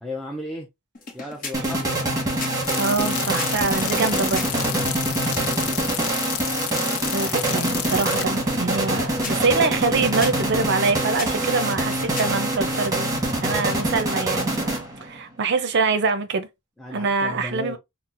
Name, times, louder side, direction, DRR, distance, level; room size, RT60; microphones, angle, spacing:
voice 1, 0.0-0.7 1.1-1.9 5.4-5.7 16.8-17.8, left 1 dB, ahead, 0.4 m, -34 dB
sound 1, 0.9-4.8 8.7-12.6, left 3 dB, 40° left, 0.9 m, -38 dB
sound 2, 1.5-15.2, right 1 dB, 15° right, 1.1 m, -25 dB
sound 3, 2.6-8.3, left 12 dB, 80° left, 0.4 m, -30 dB
voice 2, 2.8-4.6 7.1-13.1 13.4-16.5 16.9-17.8, right 4 dB, 55° right, 0.5 m, -24 dB
4.2 x 2.0 x 2.5 m
head